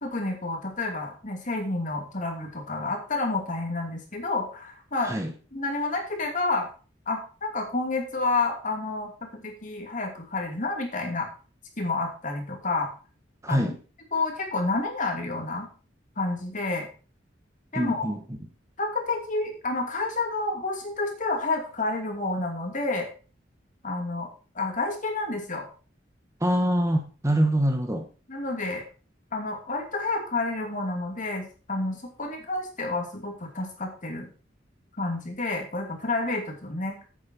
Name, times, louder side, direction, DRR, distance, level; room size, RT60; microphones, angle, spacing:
voice 1, 0.0-5.2 5.5-6.7 7.1-11.3 11.8-12.9 13.5-13.7 14.1-15.7 16.2-16.9 17.7-18.1 18.8-23.1 23.8-24.3 24.5-25.7 28.3-28.8 29.3-34.3 35.0-37.0, left 3 dB, 45° left, 3 dB, 2.6 m, -29 dB
voice 2, 13.4-13.8 17.7-18.2 26.4-28.1, equal, 15° right, 4 dB, 1.2 m, -24 dB
8.8 x 7.9 x 4.5 m, 0.36 s
head